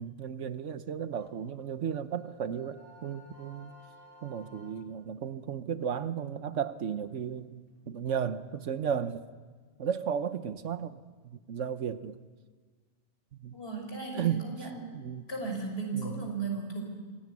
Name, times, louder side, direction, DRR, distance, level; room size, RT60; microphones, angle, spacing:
voice 1, 0.0-3.7 4.2-9.2 9.8-12.2 13.3-13.6 14.1-14.5 14.9-15.2 15.9-16.2, right 8 dB, 85° right, 12 dB, 1.3 m, -34 dB
sound 1, 1.2-5.0 8.2-8.6, equal, 50° right, 5.2 m, -56 dB
voice 2, 13.5-14.9 15.3-16.8, right 4 dB, 55° left, 1 dB, 6.0 m, -35 dB
26.0 x 17.0 x 9.7 m, 1.5 s
omnidirectional pair, 1.2 m